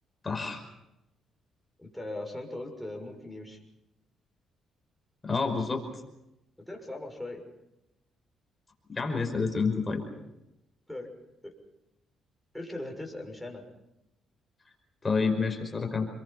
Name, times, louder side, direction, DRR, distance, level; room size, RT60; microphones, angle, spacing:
voice 1, 0.2-0.6 5.2-5.8 8.9-10.0 15.0-16.1, left 4 dB, 25° left, 3 dB, 5.4 m, -28 dB
voice 2, 1.8-3.6 6.7-7.5 10.9-11.1 11.4-11.5 12.5-13.7, left 1 dB, 5° left, 1 dB, 6.5 m, -39 dB
28.5 x 23.0 x 5.8 m, 0.91 s
cardioid pair, 90°, 0 cm